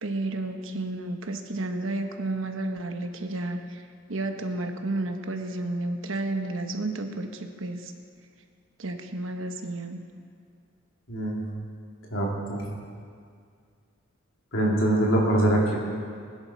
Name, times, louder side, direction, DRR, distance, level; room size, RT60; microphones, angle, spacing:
voice 1, 0.0-3.8 4.1-7.9 8.8-10.0, right 2 dB, 70° right, 5 dB, 1.1 m, -31 dB
voice 2, 11.1-11.4 12.1-12.6 14.5-15.8, right 1 dB, 70° left, -3 dB, 2.9 m, -23 dB
20.5 x 10.5 x 4.4 m, 2.2 s
head